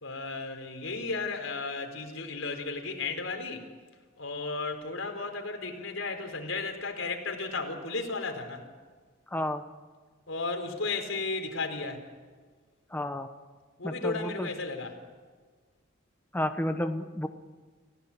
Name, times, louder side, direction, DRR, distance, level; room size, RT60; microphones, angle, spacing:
voice 1, 0.0-3.6 4.2-8.6 10.3-12.0 13.8-14.9, left 3 dB, 90° left, 4 dB, 4.3 m, -34 dB
voice 2, 9.3-9.6 12.9-13.3 13.8-14.5 16.3-17.3, left 1 dB, 10° left, 7 dB, 1.1 m, -31 dB
29.0 x 16.5 x 8.6 m, 1.5 s
head